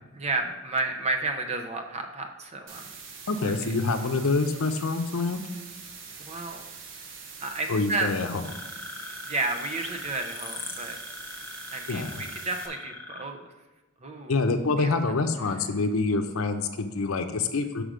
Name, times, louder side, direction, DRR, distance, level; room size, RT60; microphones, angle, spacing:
voice 1, 0.1-2.9 3.4-3.5 6.2-6.7 7.4-8.1 9.0-11.0 11.7-13.5 14.0-14.4 14.8-14.9, right 2 dB, 30° right, 5 dB, 0.6 m, -32 dB
sound 1, 2.7-12.7, right 5 dB, 60° right, 0.9 m, -44 dB
voice 2, 3.3-5.4 7.7-8.4 11.9-12.2 14.3-17.8, left 3 dB, 80° left, 7 dB, 0.6 m, -26 dB
sound 2, 8.4-13.2, left 2 dB, 10° left, 0.7 m, -41 dB
5.1 x 5.0 x 6.2 m, 1.1 s
head